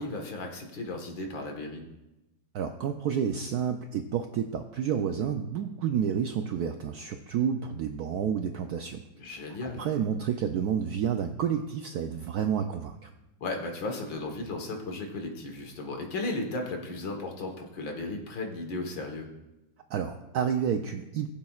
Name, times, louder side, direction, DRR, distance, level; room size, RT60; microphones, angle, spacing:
voice 1, 0.0-1.8 9.2-9.8 13.4-19.3, left 2 dB, 70° left, 3 dB, 2.1 m, -35 dB
voice 2, 2.5-9.0 9.6-13.1 19.9-21.3, right 8 dB, 75° right, 6 dB, 0.9 m, -30 dB
19.5 x 7.5 x 2.4 m, 0.99 s
omnidirectional pair, 2.2 m